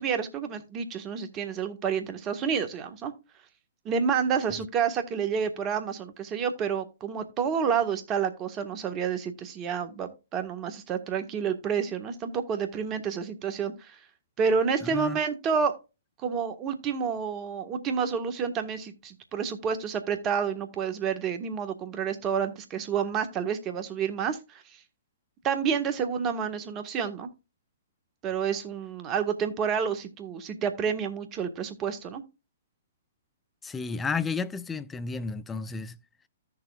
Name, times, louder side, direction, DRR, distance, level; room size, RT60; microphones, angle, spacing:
voice 1, 0.0-3.1 3.8-14.0 14.4-15.8 16.2-24.6 25.4-27.3 28.2-32.2, right 6 dB, 25° right, 1.5 m, -29 dB
voice 2, 14.8-15.2 33.6-36.0, left 4 dB, 10° left, 0.6 m, -32 dB
14.0 x 6.9 x 2.4 m
hypercardioid pair, 125°, 0 cm